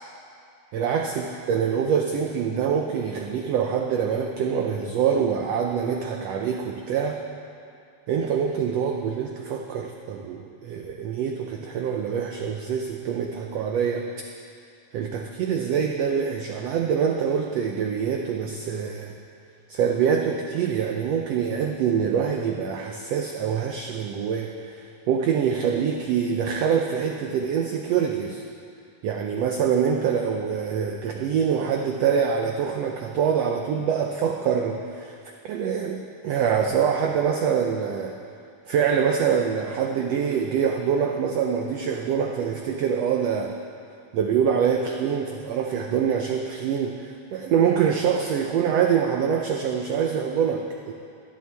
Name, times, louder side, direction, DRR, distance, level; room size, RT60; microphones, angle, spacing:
voice 1, 0.7-7.2 8.1-14.1 14.9-19.1 19.7-28.4 29.0-35.2 35.4-38.2 38.7-43.5 44.1-50.9, right 7 dB, 90° right, 3 dB, 1.4 m, -25 dB
21.0 x 11.0 x 3.4 m, 2.4 s
omnidirectional pair, 3.7 m